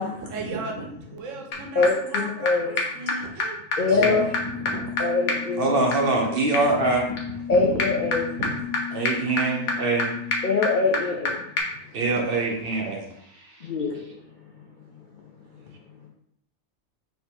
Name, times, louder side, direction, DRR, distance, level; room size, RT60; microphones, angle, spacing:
voice 1, 0.1-2.6 2.9-4.9 7.6-7.8 8.1-8.9 15.6-15.8, right 2 dB, 70° right, 2 dB, 1.0 m, -36 dB
sound 1, 1.5-1.6 1.8-1.9 2.1-2.2 2.5-2.6 2.8-2.9 3.1-3.2 3.4-3.5 3.7-3.8 4.0-11.3 11.6-11.7, left 4 dB, 85° left, 1.2 m, -29 dB
voice 2, 2.4-2.9 3.8-4.3 5.0-5.8 7.5-8.2 10.4-11.5 13.6-14.1, left 4 dB, 60° left, -2 dB, 0.5 m, -23 dB
voice 3, 3.9-4.2 5.6-7.1 8.9-10.1 11.9-13.0 13.3-13.5, right 3 dB, 55° right, 1 dB, 0.7 m, -24 dB
3.4 x 2.8 x 4.4 m, 0.71 s
omnidirectional pair, 1.4 m